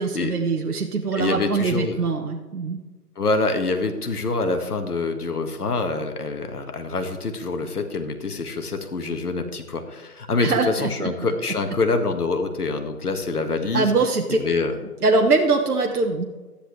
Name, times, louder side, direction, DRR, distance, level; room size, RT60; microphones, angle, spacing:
voice 1, 0.0-2.8 10.4-11.1 13.7-14.4 15.0-16.3, right 3 dB, 70° right, 3 dB, 1.3 m, -22 dB
voice 2, 1.2-2.0 3.2-13.9 14.3-14.8, left 3 dB, 70° left, 6 dB, 1.8 m, -25 dB
13.5 x 10.0 x 3.3 m, 1.2 s
figure-of-eight pair, 165°, 47 cm